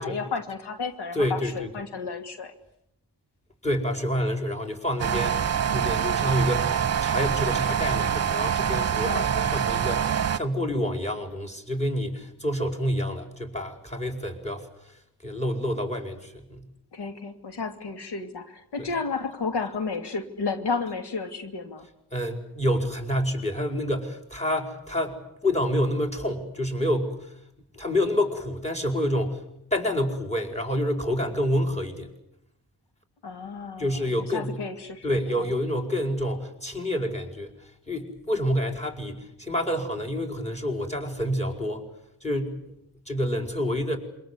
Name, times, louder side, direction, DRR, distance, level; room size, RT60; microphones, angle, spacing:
voice 1, 0.0-2.5 9.0-9.3 16.9-21.9 33.2-34.1 34.3-35.0 35.4-35.5, left 4 dB, 85° left, 7 dB, 2.6 m, -32 dB
voice 2, 1.1-1.7 3.6-6.7 7.0-16.7 18.8-18.9 22.1-27.4 27.7-29.4 29.7-32.1 33.8-34.6 35.0-41.9 42.2-42.6 43.1-44.0, equal, 15° left, 5 dB, 5.1 m, -28 dB
sound 1, 5.0-10.4, right 8 dB, 40° right, 1.0 m, -25 dB
27.5 x 25.0 x 8.3 m, 0.78 s
wide cardioid pair, 130°, 39 cm